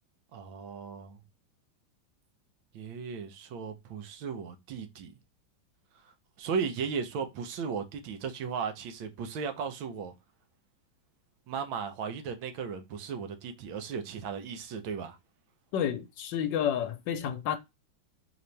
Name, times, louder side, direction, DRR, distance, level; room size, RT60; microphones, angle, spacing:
voice 1, 0.3-1.2 2.7-5.1 6.4-10.1 11.5-15.2, right 6 dB, 85° right, 1.6 m, -36 dB
voice 2, 15.7-17.6, left 9 dB, 75° left, 1.2 m, -30 dB
4.2 x 3.0 x 3.2 m
omnidirectional pair, 2.2 m